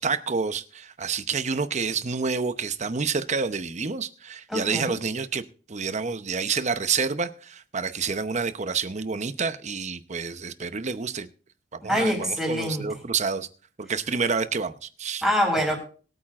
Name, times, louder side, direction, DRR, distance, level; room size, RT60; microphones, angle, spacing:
voice 1, 0.0-5.4 5.7-11.3 11.7-13.5 13.8-15.2, right 5 dB, 40° right, 0.8 m, -28 dB
voice 2, 4.5-4.9 11.8-13.0 15.2-15.8, equal, ahead, 4.8 m, -25 dB
22.0 x 8.8 x 2.5 m
head